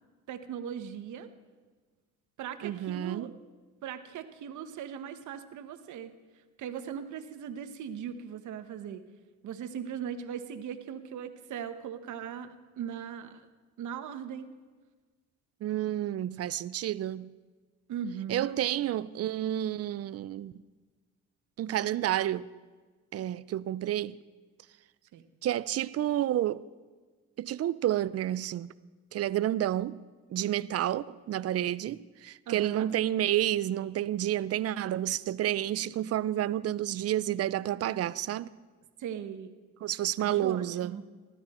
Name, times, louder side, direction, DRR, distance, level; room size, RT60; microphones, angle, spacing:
voice 1, 0.3-1.3 2.4-3.3 3.8-6.1 6.6-9.0 9.4-13.5 13.8-14.5 17.9-18.5 25.1-25.2 32.5-32.9 39.0-39.5 40.2-41.0, right 8 dB, 75° right, 1.0 m, -39 dB
voice 2, 2.6-3.3 15.6-17.3 18.3-20.6 21.6-22.5 23.1-24.2 25.4-26.6 27.4-28.7 29.1-30.0 30.3-38.5 39.8-41.0, right 12 dB, 55° right, 0.5 m, -30 dB
16.0 x 13.0 x 4.3 m
cardioid pair, 90°, 30 cm